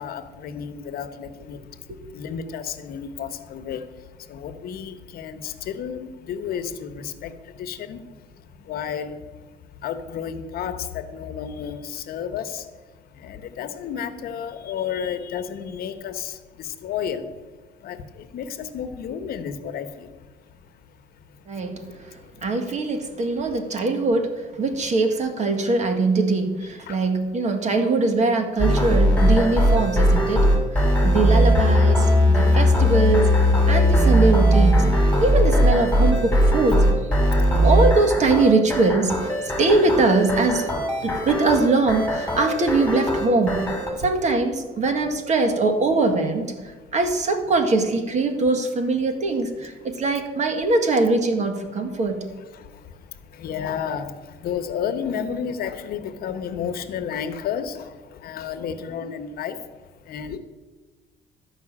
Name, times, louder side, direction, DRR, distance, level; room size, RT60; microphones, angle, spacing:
voice 1, 0.0-12.9 13.1-17.4 17.8-21.0 21.3-22.5 26.9-27.0 30.9-31.3 37.3-37.6 39.5-39.6 41.0-41.1 44.0-44.1 52.5-60.4, left 7 dB, 65° left, 8 dB, 1.0 m, -32 dB
voice 2, 21.5-33.3 33.7-34.9 35.2-36.9 37.6-40.7 41.0-43.7 44.0-52.2, right 3 dB, 45° right, 6 dB, 1.8 m, -22 dB
sound 1, 28.6-43.9, equal, 10° left, 2.8 m, -19 dB
13.0 x 5.7 x 8.6 m, 1.3 s
cardioid pair, 110°, 17 cm